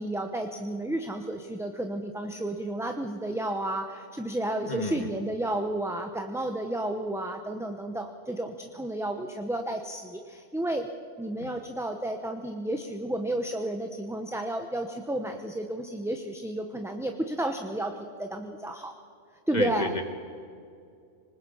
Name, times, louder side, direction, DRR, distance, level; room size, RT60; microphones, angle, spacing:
voice 1, 0.0-10.9 11.2-17.9 18.2-18.9 19.5-19.9, right 1 dB, 5° right, 4 dB, 0.8 m, -32 dB
voice 2, 4.7-5.1 11.4-11.5 19.5-20.0, left 2 dB, 35° left, 5 dB, 2.0 m, -31 dB
26.0 x 20.0 x 5.6 m, 2.4 s
omnidirectional pair, 1.2 m